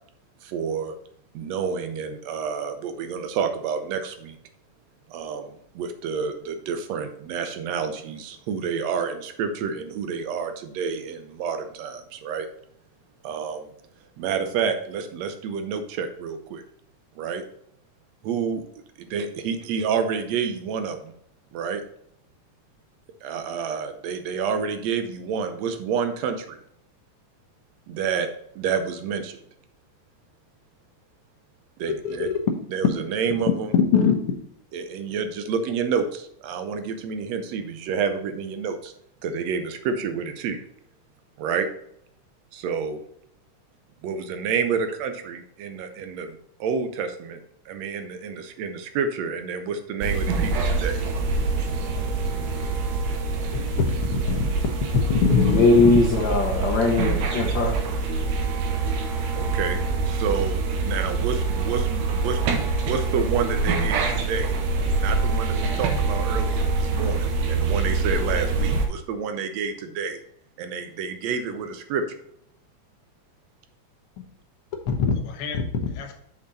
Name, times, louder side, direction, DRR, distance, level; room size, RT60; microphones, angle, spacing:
voice 1, 0.4-1.0 1.3-4.4 5.1-12.5 13.2-13.7 14.2-16.6 17.2-17.4 18.2-18.6 19.1-21.1 21.5-21.8 23.2-26.6 27.9-28.3 28.6-29.4 31.8-32.3 32.7-33.7 34.7-38.9 39.2-40.6 41.4-41.7 42.5-43.0 44.0-47.4 47.7-51.0 59.4-59.8 60.1-62.4 62.8-64.5 65.0-66.6 67.0-70.2 70.6-72.2, right 6 dB, 70° right, 1.8 m, -29 dB
voice 2, 33.7-34.1 54.3-54.4 55.1-55.7 74.9-76.1, left 6 dB, 60° left, 1.6 m, -22 dB
sound 1, 50.0-68.9, right 4 dB, 90° right, 2.5 m, -25 dB
voice 3, 55.5-57.8, left 3 dB, 85° left, 1.0 m, -20 dB
6.4 x 6.0 x 4.1 m
omnidirectional pair, 3.4 m